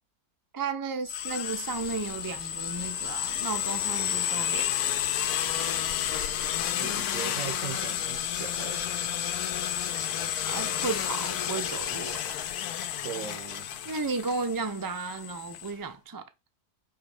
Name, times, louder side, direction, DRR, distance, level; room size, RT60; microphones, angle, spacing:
voice 1, 0.5-4.7 10.5-12.4 13.8-16.2, right 4 dB, 30° right, 0.3 m, -34 dB
sound 1, 1.0-15.7, left 11 dB, 75° left, 1.1 m, -31 dB
sound 2, 1.7-12.2, left 5 dB, 50° left, 1.1 m, -45 dB
voice 2, 6.8-8.9 13.0-13.7, right 10 dB, 65° right, 1.0 m, -39 dB
6.6 x 3.1 x 4.9 m
omnidirectional pair, 1.6 m